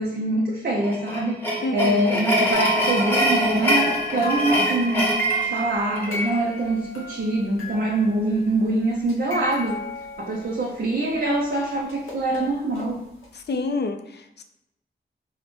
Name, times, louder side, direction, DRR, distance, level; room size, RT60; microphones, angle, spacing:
voice 1, 0.0-1.4 1.7-9.8 10.2-13.0, right 2 dB, 55° right, -3 dB, 0.6 m, -24 dB
sound 1, 0.8-6.3, equal, 10° left, 1.0 m, -24 dB
voice 2, 1.6-2.1 13.3-14.4, left 3 dB, 55° left, 7 dB, 0.4 m, -28 dB
sound 2, 2.5-8.4 9.0-11.1 11.9-12.9 13.2-13.3, right 2 dB, 85° left, 0.7 m, -32 dB
3.9 x 2.1 x 3.0 m, 0.81 s
cardioid pair, 45°, 21 cm